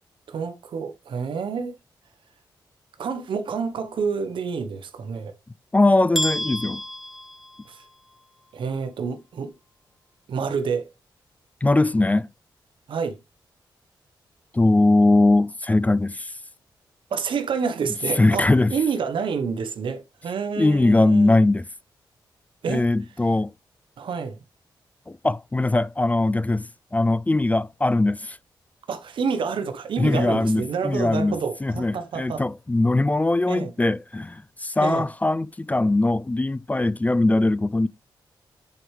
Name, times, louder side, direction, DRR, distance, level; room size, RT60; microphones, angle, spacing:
voice 1, 0.3-1.8 3.0-5.3 7.7-7.8 8.5-9.5 10.3-10.9 12.9-13.2 17.1-21.4 22.6-22.9 24.0-24.4 28.9-32.4 33.5-33.7 34.8-35.0, right 5 dB, 75° right, 1.2 m, -28 dB
voice 2, 5.7-6.8 11.6-12.3 14.5-16.3 18.2-18.7 20.6-21.6 22.7-23.5 25.1-28.4 30.0-31.4 31.6-37.9, left 2 dB, 20° left, 0.4 m, -21 dB
sound 1, 6.1-8.1, equal, ahead, 0.8 m, -30 dB
9.5 x 4.7 x 3.3 m
cardioid pair, 65°, 8 cm